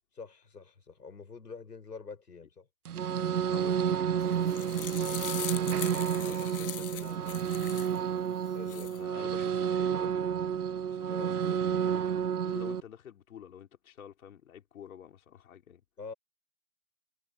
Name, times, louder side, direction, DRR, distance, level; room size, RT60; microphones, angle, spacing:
voice 1, 0.2-2.7 8.5-8.9 11.1-11.3 16.0-16.1, left 4 dB, 85° left, 7.9 m, -45 dB
sound 1, 2.9-12.8, right 8 dB, 65° right, 1.3 m, -30 dB
voice 2, 3.5-7.5 8.7-15.8, left 9 dB, 60° left, 5.8 m, -50 dB
sound 2, 4.2-8.0 8.5-9.0, left 12 dB, 40° left, 0.5 m, -41 dB
figure-of-eight pair, 125°, 47 cm